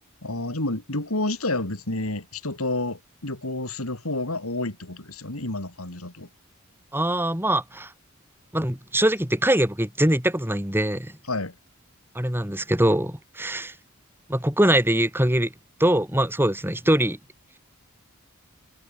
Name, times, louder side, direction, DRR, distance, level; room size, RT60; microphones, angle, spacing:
voice 1, 0.2-6.3 11.3-11.5, left 2 dB, 85° left, 4.5 m, -29 dB
voice 2, 6.9-7.9 8.5-11.1 12.2-13.7 14.3-15.5 15.8-17.2, right 1 dB, 10° right, 5.6 m, -22 dB
head